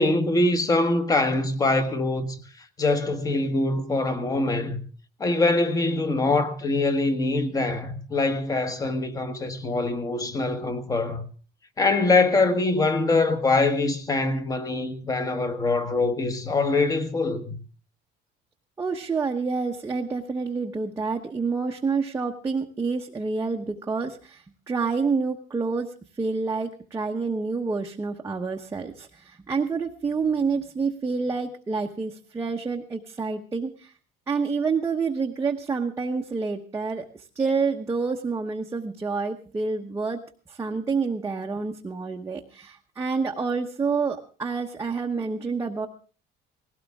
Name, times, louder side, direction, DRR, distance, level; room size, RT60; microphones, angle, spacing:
voice 1, 0.0-2.4 2.8-4.8 5.2-11.2 11.8-17.6, left 2 dB, 20° left, 1.3 m, -23 dB
voice 2, 18.8-33.9 34.3-37.0 37.4-40.2 40.5-45.9, right 4 dB, 15° right, 0.9 m, -28 dB
19.0 x 17.0 x 3.6 m
cardioid pair, 150°, 19 cm